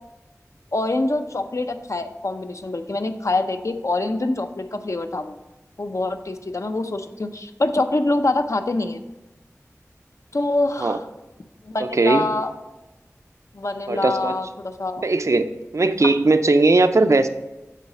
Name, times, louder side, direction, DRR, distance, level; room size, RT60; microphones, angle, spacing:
voice 1, 0.7-5.4 5.8-9.0 10.3-11.1 11.6-12.5 13.5-15.0 16.0-16.1, left 2 dB, 65° left, 7 dB, 0.6 m, -25 dB
voice 2, 13.9-14.4 15.0-17.3, right 3 dB, 60° right, 9 dB, 0.5 m, -18 dB
8.4 x 4.1 x 5.5 m, 1.0 s
wide cardioid pair, 50°, 6 cm